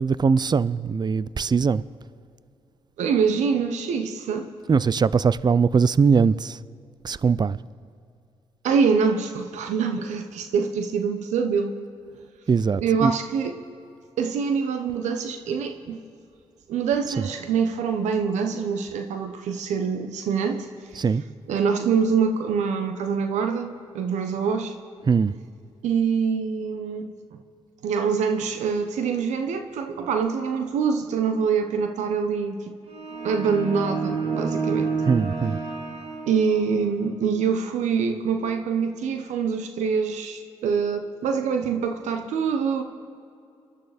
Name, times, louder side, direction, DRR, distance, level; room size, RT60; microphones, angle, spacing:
voice 1, 0.0-1.8 4.7-6.6 7.0-7.6 12.5-13.1 17.2-17.3 21.0-21.2 25.1-25.3 35.1-35.6, right 5 dB, 35° right, 0.6 m, -21 dB
voice 2, 3.0-4.5 8.6-11.8 12.8-13.6 14.2-16.0 16.7-20.7 21.5-24.7 25.8-27.1 27.8-32.6 33.2-34.9 36.3-42.8, right 6 dB, 80° right, 1.2 m, -25 dB
sound 1, 32.9-36.9, right 4 dB, 60° right, 2.4 m, -29 dB
29.0 x 11.5 x 4.3 m
supercardioid pair, 45°, 12 cm